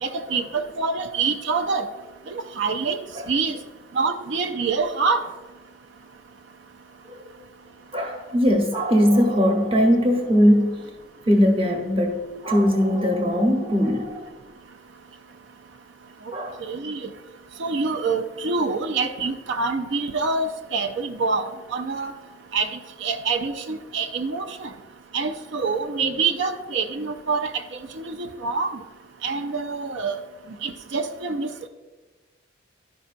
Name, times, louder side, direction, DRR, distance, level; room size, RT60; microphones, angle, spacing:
voice 1, 0.0-1.9 2.3-3.0 3.3-3.6 3.9-5.2 16.6-17.1 17.6-22.1 22.5-24.7 25.1-28.8 29.2-30.2 30.6-31.7, right 4 dB, 65° right, 7 dB, 0.4 m, -26 dB
voice 2, 7.0-7.4 7.9-10.9 11.3-14.3 16.3-16.7, equal, 25° right, 2 dB, 0.9 m, -20 dB
11.5 x 5.5 x 2.5 m, 1.2 s
head